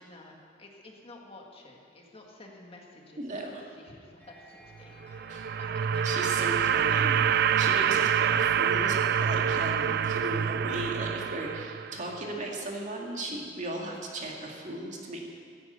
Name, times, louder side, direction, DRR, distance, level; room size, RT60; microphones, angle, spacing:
voice 1, 0.0-3.4 3.8-5.2 5.6-6.1, left 2 dB, 30° left, 0 dB, 1.9 m, -51 dB
voice 2, 3.2-3.5 5.3-5.5 6.0-15.2, right 1 dB, 45° right, -1 dB, 2.3 m, -36 dB
sound 1, 4.2-9.6, left 1 dB, 10° left, 3.2 m, -55 dB
sound 2, 5.0-12.1, right 8 dB, 60° right, 0.4 m, -26 dB
14.5 x 11.0 x 8.0 m, 2.4 s
head